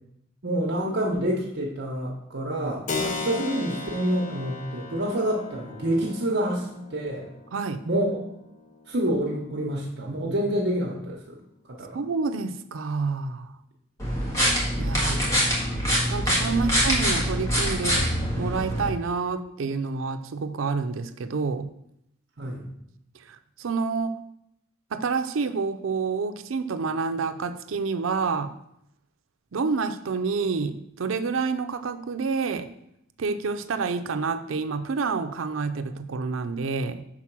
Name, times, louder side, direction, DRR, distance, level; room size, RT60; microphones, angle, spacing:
voice 1, 0.4-7.3 7.8-8.2 8.9-11.4 11.7-12.0 14.9-15.4 22.4-22.7, right 1 dB, 60° right, -3 dB, 1.0 m, -28 dB
Keyboard (musical), 2.9-11.1, left 3 dB, 40° left, 0.7 m, -38 dB
voice 2, 7.5-7.8 11.9-13.5 14.8-15.1 16.1-18.1 18.4-21.7 23.3-24.2 24.9-28.6 29.5-32.7 33.2-37.0, right 4 dB, 85° right, 10 dB, 0.5 m, -28 dB
sound 1, 14.0-18.9, equal, 15° left, 1.7 m, -24 dB
5.9 x 3.9 x 6.0 m, 0.77 s
head